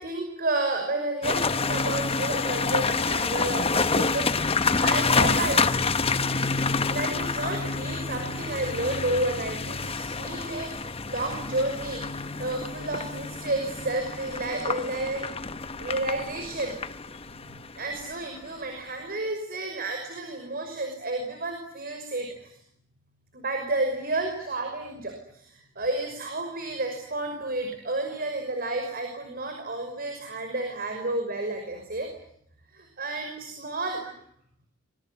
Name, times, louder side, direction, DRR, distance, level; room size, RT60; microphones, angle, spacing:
voice 1, 0.0-5.7 6.9-10.7 11.1-15.3 15.8-16.7 17.4-22.5 23.3-32.1 32.7-34.1, right 2 dB, 45° right, 4 dB, 5.9 m, -31 dB
sound 1, 1.2-18.4, left 4 dB, 30° left, 1.1 m, -28 dB
25.5 x 23.0 x 9.7 m, 0.72 s
head